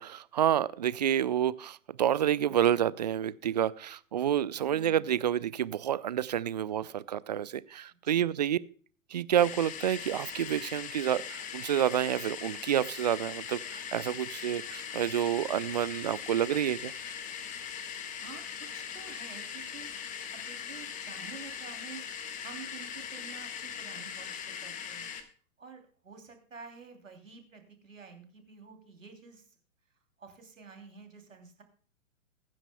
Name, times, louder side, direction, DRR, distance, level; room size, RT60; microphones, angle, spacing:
voice 1, 0.0-8.6 9.1-16.9, right 10 dB, 35° right, 21 dB, 0.4 m, -29 dB
voice 2, 4.6-5.2 8.0-8.4 18.1-19.9 20.3-22.0 22.4-25.1 25.6-29.5 30.2-31.6, right 5 dB, 70° right, 5 dB, 3.0 m, -50 dB
sound 1, 9.4-25.2, left 8 dB, 20° left, 1.3 m, -40 dB
21.0 x 9.9 x 2.2 m, 0.44 s
figure-of-eight pair, 110°, 40 cm